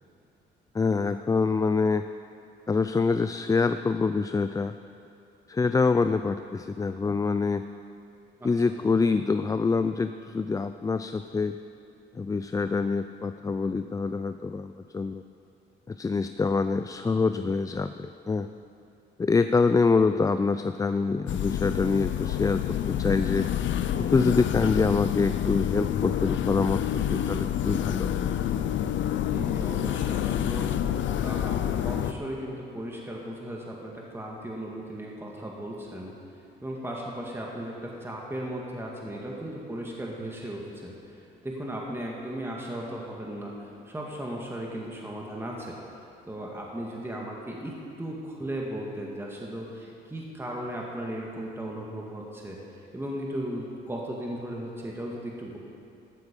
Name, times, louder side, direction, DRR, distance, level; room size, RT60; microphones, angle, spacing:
voice 1, 0.7-2.1 2.7-4.7 5.5-7.7 8.4-11.6 12.2-15.2 15.9-17.9 18.3-18.5 19.2-22.6 22.9-23.5 24.0-28.1, left 4 dB, 15° left, 10 dB, 0.3 m, -25 dB
voice 2, 8.4-8.8 29.3-30.7 31.2-36.1 36.6-41.0 41.4-45.8 46.2-52.6 52.9-55.6, right 1 dB, 10° right, -2 dB, 1.9 m, -36 dB
sound 1, 21.3-32.1, left 10 dB, 70° left, 0.6 m, -28 dB
13.0 x 12.0 x 5.3 m, 2.6 s
cardioid pair, 90°, 20 cm